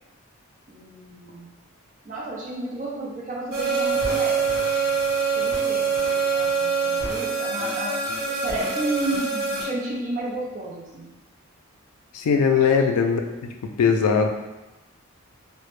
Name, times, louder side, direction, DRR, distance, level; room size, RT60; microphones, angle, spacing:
voice 1, 0.7-1.5 2.0-4.5 5.3-7.9 8.3-11.1 12.5-12.6, right 2 dB, 35° right, -5 dB, 0.5 m, -32 dB
sound 1, 3.5-9.6, right 5 dB, 80° right, 0.9 m, -24 dB
voice 2, 12.1-14.3, left 6 dB, 90° left, 4 dB, 0.3 m, -20 dB
2.0 x 2.0 x 3.0 m, 1.0 s
head